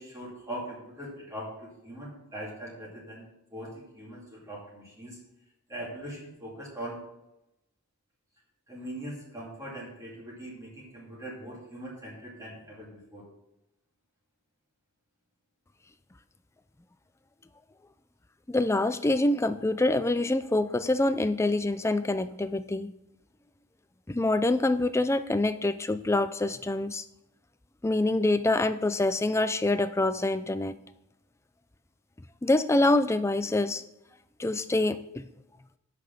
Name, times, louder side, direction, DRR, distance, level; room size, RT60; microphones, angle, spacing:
voice 1, 0.0-5.2 5.7-7.0 8.7-13.3, right 1 dB, 15° right, -4 dB, 2.4 m, -41 dB
voice 2, 18.5-22.9 24.1-27.0 27.8-30.7 32.4-33.8 34.4-35.2, left 2 dB, 10° left, 12 dB, 0.4 m, -26 dB
8.2 x 5.9 x 7.0 m, 0.88 s
head